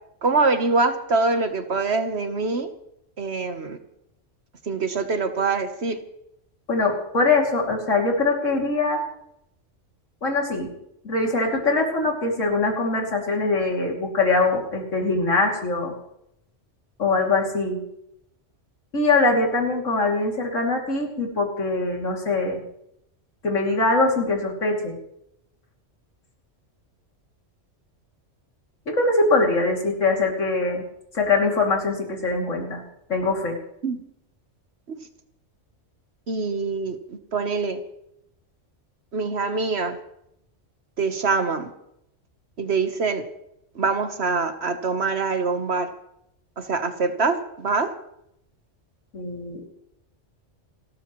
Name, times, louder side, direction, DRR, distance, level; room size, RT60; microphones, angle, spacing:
voice 1, 0.2-2.7 3.2-3.8 4.7-6.0 33.8-34.0 34.9-35.0 36.3-37.8 39.1-40.0 41.0-41.7 42.6-43.2 43.7-45.9 46.6-47.9, right 4 dB, 60° right, 8 dB, 1.4 m, -24 dB
voice 2, 6.7-9.0 10.2-10.7 11.0-15.9 17.0-17.8 18.9-22.6 23.4-24.9 28.9-30.8 31.1-32.8 33.1-33.6 49.1-49.6, left 3 dB, 85° left, 0 dB, 3.1 m, -22 dB
29.5 x 13.5 x 3.1 m, 0.79 s
omnidirectional pair, 1.3 m